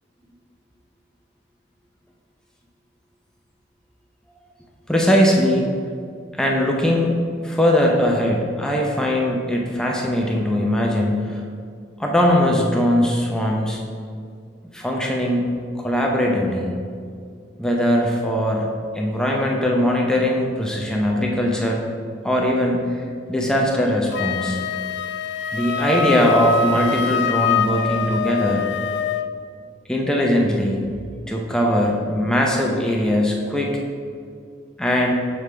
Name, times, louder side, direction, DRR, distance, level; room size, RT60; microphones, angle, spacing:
voice 1, 4.9-5.7 6.4-7.2 7.4-11.4 12.0-13.8 14.7-15.5 15.8-16.7 17.6-21.8 22.2-22.9 23.3-24.6 25.5-28.7 29.9-30.9 31.3-33.8 34.8-35.1, equal, 5° left, -1 dB, 0.5 m, -20 dB
Wind instrument woodwind instrument, 24.1-29.3, left 6 dB, 65° left, 0.3 m, -24 dB
6.8 x 4.7 x 3.3 m, 2.2 s
head